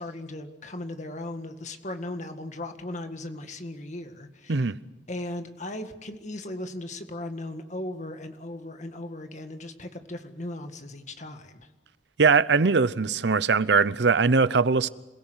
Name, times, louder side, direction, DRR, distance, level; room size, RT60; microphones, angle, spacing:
voice 1, 0.0-4.7 5.1-11.7, left 1 dB, 40° left, 1.9 m, -37 dB
voice 2, 12.2-14.9, right 4 dB, 70° right, 0.7 m, -21 dB
27.5 x 17.0 x 8.1 m
head